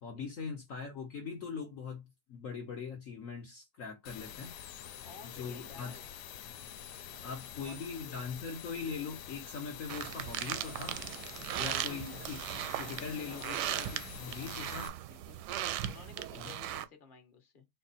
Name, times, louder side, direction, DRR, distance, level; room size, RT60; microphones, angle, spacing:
voice 1, 0.0-2.0 2.3-4.5 5.2-6.0 7.2-11.0 11.6-14.9 16.4-16.5, left 5 dB, 55° left, 1.2 m, -41 dB
sound 1, 4.1-14.9, left 9 dB, 80° left, 1.3 m, -47 dB
voice 2, 5.0-6.1 7.1-8.3 11.7-12.0 12.7-13.9 15.1-15.4 15.9-17.6, left 4 dB, 35° left, 1.4 m, -54 dB
sound 2, 9.9-16.8, right 12 dB, 85° right, 1.2 m, -38 dB
4.6 x 2.1 x 4.1 m
omnidirectional pair, 1.8 m